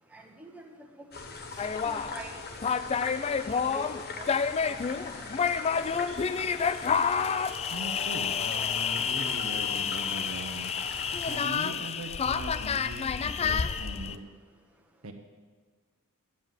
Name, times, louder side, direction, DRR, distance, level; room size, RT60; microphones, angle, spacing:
voice 1, 0.1-0.9 1.8-2.4 2.8-3.1 3.7-3.9 4.2-4.3 4.6-5.2 5.7-5.9, right 2 dB, 5° right, 0 dB, 1.1 m, -45 dB
sound 1, 1.1-11.4, left 3 dB, 45° left, 1.1 m, -42 dB
sound 2, 1.6-14.2, left 6 dB, 30° left, 0.3 m, -29 dB
voice 2, 7.7-10.7 11.3-14.2 15.0-15.1, right 1 dB, 70° right, 4 dB, 1.1 m, -40 dB
10.0 x 7.4 x 7.7 m, 1.5 s
head